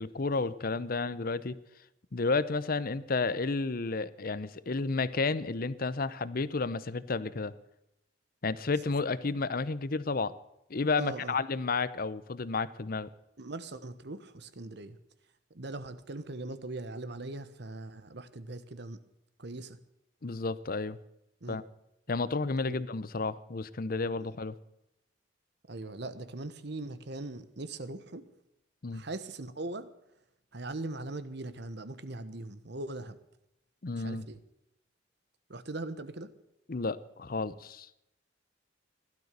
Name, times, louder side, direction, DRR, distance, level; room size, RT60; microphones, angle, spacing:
voice 1, 0.0-1.6 2.1-7.5 8.4-10.3 10.7-13.1 20.2-21.0 21.5-21.6 22.1-24.6 28.8-29.0 33.8-34.3 36.7-37.9, left 3 dB, 50° left, 17 dB, 0.7 m, -31 dB
voice 2, 11.0-11.4 13.4-15.0 15.5-19.0 19.4-19.8 21.4-21.6 22.7-22.8 25.7-28.3 28.9-29.9 30.5-33.2 34.0-34.4 35.5-36.3, right 2 dB, 65° right, 13 dB, 1.2 m, -40 dB
16.5 x 12.5 x 6.7 m, 0.84 s
head